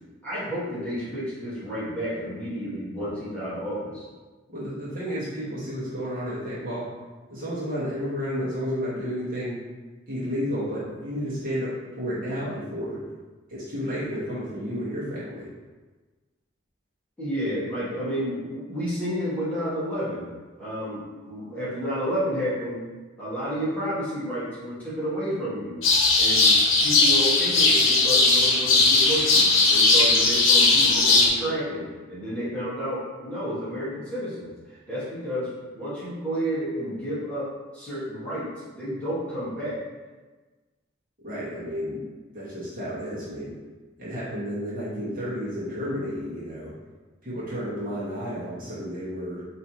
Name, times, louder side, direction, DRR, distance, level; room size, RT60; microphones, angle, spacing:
voice 1, 0.2-4.0 17.2-20.3 20.6-21.0 21.3-22.8 23.2-25.8 26.2-26.6 26.8-35.5 35.7-37.5 37.7-38.5 38.7-39.8, equal, 5° left, -12 dB, 1.5 m, -30 dB
voice 2, 4.5-6.9 7.3-9.6 10.1-13.0 13.5-15.5 41.2-42.1 42.3-43.5 44.0-46.7 47.2-49.4, equal, 45° right, -9 dB, 1.3 m, -31 dB
sound 1, 25.8-31.3, left 3 dB, 85° left, 0.7 m, -18 dB
4.6 x 3.0 x 2.8 m, 1.3 s
head